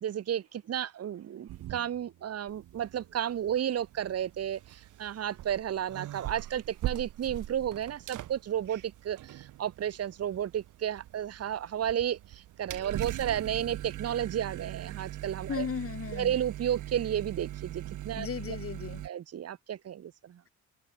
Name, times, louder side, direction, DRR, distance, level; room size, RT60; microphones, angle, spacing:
voice 1, 0.0-15.7 16.1-18.6 19.0-20.4, right 10 dB, 55° right, 1.5 m, -33 dB
sound 1, 1.5-2.2 2.5-19.1, right 14 dB, 80° right, 2.9 m, -42 dB
voice 2, 15.5-16.3 18.1-19.0, left 7 dB, 50° left, 3.1 m, -36 dB
cardioid pair, 90°, 30 cm